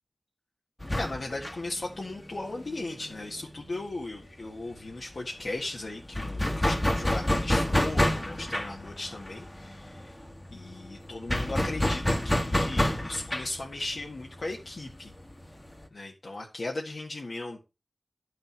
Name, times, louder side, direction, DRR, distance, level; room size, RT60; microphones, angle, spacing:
sound 1, 0.8-4.2 4.5-4.6 4.9-15.9, left 1 dB, 15° left, 1.6 m, -29 dB
voice 1, 1.0-10.1 10.5-15.1 15.9-17.6, left 2 dB, 75° left, -2 dB, 1.7 m, -37 dB
11.0 x 6.7 x 4.5 m, 0.27 s
wide cardioid pair, 70°, 0 cm